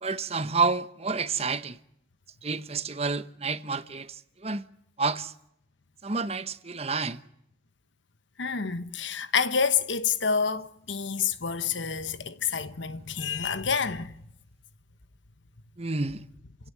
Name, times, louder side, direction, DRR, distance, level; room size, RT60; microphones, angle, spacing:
voice 1, 0.0-1.8 2.4-4.7 5.0-5.3 6.0-7.2 15.8-16.2, right 4 dB, 35° right, 1.0 m, -29 dB
voice 2, 8.4-14.1, left 6 dB, 80° left, 1.2 m, -28 dB
29.0 x 17.0 x 9.7 m
head